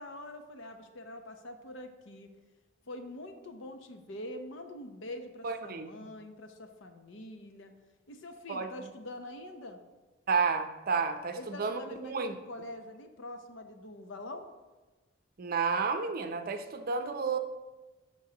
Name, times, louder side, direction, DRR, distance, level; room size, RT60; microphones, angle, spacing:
voice 1, 0.0-2.3 2.9-7.7 8.1-9.8 11.4-14.5, left 1 dB, 85° left, 6 dB, 0.8 m, -44 dB
voice 2, 5.4-6.1 8.5-8.7 10.3-12.3 15.4-17.4, right 5 dB, 50° right, 8 dB, 0.5 m, -31 dB
12.0 x 4.6 x 2.9 m, 1.2 s
head